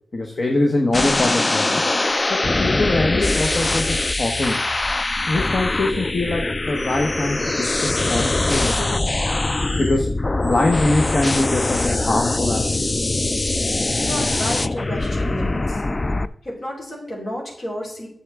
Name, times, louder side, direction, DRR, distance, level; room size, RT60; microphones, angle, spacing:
voice 1, 0.1-1.8 2.3-4.7 5.2-9.2 9.8-10.1 10.4-12.9, left 2 dB, 55° left, 2 dB, 1.0 m, -23 dB
sound 1, 0.9-16.3, left 2 dB, 35° left, 0.3 m, -22 dB
voice 2, 13.9-15.8 16.4-18.1, equal, 70° left, -4 dB, 3.6 m, -31 dB
9.7 x 7.0 x 3.5 m, 0.69 s
cardioid pair, 65°, 0 cm